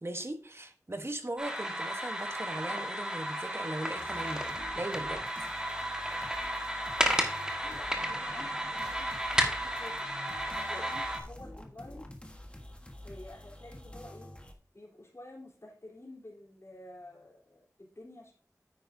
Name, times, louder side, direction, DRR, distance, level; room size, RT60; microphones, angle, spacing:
voice 1, 0.0-4.4 4.7-5.2, right 1 dB, 45° right, 7 dB, 1.1 m, -38 dB
sound 1, 1.4-11.2, equal, 10° right, 1.6 m, -33 dB
sound 2, 4.0-14.5, left 1 dB, 20° left, 1.4 m, -48 dB
voice 2, 7.6-10.0 10.5-12.0 13.0-14.3 14.7-18.3, left 1 dB, 50° left, -4 dB, 3.6 m, -50 dB
9.4 x 8.8 x 2.7 m, 0.42 s
wide cardioid pair, 50°, 6 cm